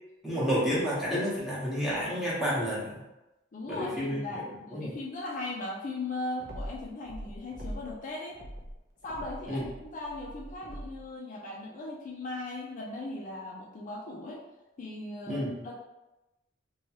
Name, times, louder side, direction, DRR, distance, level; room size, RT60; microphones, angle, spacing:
voice 1, 0.2-3.0 3.7-4.4 4.7-5.0 9.5-9.6 15.3-15.6, equal, ahead, -8 dB, 0.9 m, -30 dB
voice 2, 3.5-8.4 9.0-14.4 14.8-15.7, left 2 dB, 40° left, -2 dB, 0.4 m, -38 dB
sound 1, 6.4-8.0 8.3-11.1, equal, 60° right, 0.5 m, -42 dB
2.9 x 2.3 x 2.8 m, 0.99 s
head